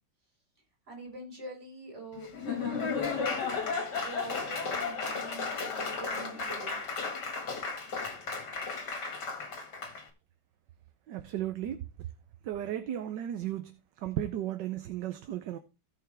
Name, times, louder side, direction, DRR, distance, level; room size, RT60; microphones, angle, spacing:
voice 1, 0.9-3.6 4.0-6.8, right 2 dB, 35° right, 4.8 m, -45 dB
Laughter / Applause, 2.2-10.0, left 5 dB, 60° left, 2.3 m, -34 dB
voice 2, 11.1-11.8 12.5-13.7 14.0-15.6, right 11 dB, 70° right, 1.4 m, -34 dB
17.0 x 5.8 x 3.3 m
omnidirectional pair, 2.1 m